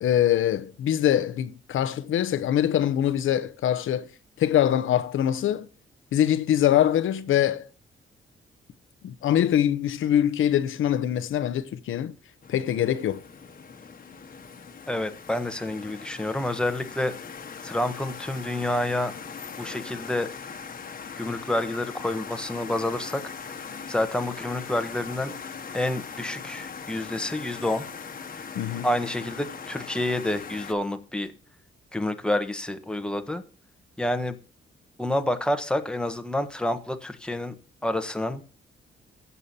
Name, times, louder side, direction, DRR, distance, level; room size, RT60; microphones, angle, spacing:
voice 1, 0.0-4.1 4.4-5.7 6.1-7.7 9.0-12.1 12.5-13.2 28.5-28.9, left 11 dB, 85° left, 0.8 m, -23 dB
sound 1, 12.4-30.7, left 6 dB, 45° left, 1.3 m, -40 dB
voice 2, 14.9-17.2 17.6-19.1 19.6-20.3 21.2-23.2 23.6-25.3 25.7-27.8 28.8-31.3 31.9-33.4 34.0-34.4 35.0-37.5 37.8-38.4, left 1 dB, 5° left, 1.1 m, -28 dB
16.0 x 6.9 x 2.7 m
cardioid pair, 120°, 20 cm